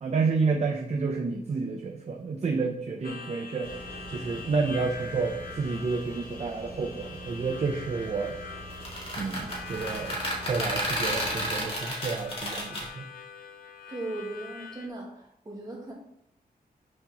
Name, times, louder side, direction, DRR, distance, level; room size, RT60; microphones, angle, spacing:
voice 1, 0.0-3.7 4.1-8.3 9.2-10.2 10.5-13.1, right 4 dB, 45° right, 2 dB, 0.7 m, -30 dB
Harmonica, 3.0-14.9, left 5 dB, 70° left, 0.9 m, -44 dB
sound 1, 3.6-11.6, right 2 dB, 70° right, 2.3 m, -44 dB
sound 2, 8.7-12.9, equal, 35° left, 2.1 m, -32 dB
voice 2, 13.9-15.9, right 2 dB, 25° right, -3 dB, 2.0 m, -38 dB
6.5 x 4.4 x 5.5 m, 0.74 s
wide cardioid pair, 175°, 16 cm